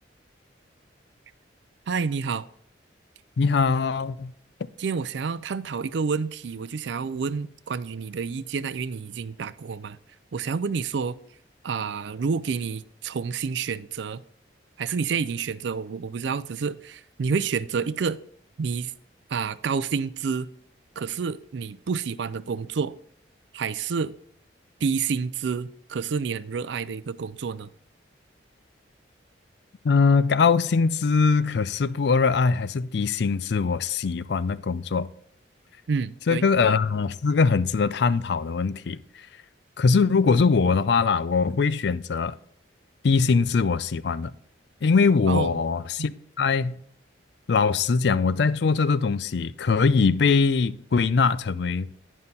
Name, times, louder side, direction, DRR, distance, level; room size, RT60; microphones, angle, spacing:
voice 1, 1.9-2.5 4.8-10.0 10.3-11.2 11.6-14.2 14.8-18.2 18.6-18.9 19.3-20.5 21.0-23.0 23.5-24.1 24.8-27.7 35.9-36.5 45.3-45.5, right 5 dB, 70° right, 0.4 m, -29 dB
voice 2, 3.4-4.3 29.8-35.1 36.3-39.0 39.8-42.4 43.0-44.3 44.8-46.8 47.5-51.9, left 5 dB, 65° left, 0.4 m, -22 dB
10.5 x 5.5 x 4.1 m
head